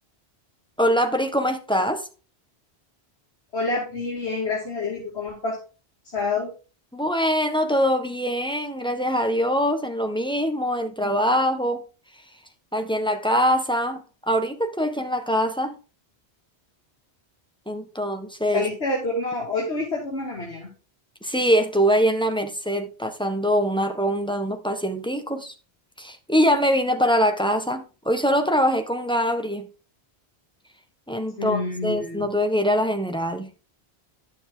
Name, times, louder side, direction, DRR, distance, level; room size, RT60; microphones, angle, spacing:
voice 1, 0.8-2.1 6.9-11.8 12.7-15.7 17.7-18.7 21.2-25.5 26.0-29.7 31.1-33.5, equal, 5° left, 1.3 m, -23 dB
voice 2, 3.5-5.6 6.1-6.5 18.5-20.7 31.4-32.3, left 3 dB, 90° left, 2.7 m, -27 dB
11.0 x 7.4 x 3.8 m
omnidirectional pair, 1.1 m